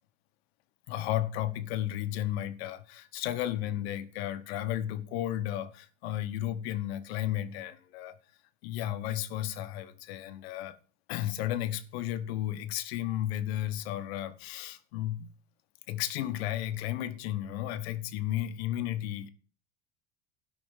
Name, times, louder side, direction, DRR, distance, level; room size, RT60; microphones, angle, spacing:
voice 1, 0.9-8.2 8.6-10.8 11.1-15.3 15.9-19.3, left 12 dB, 80° left, 1.2 m, -33 dB
16.0 x 6.0 x 5.6 m
cardioid pair, 175°, 30 cm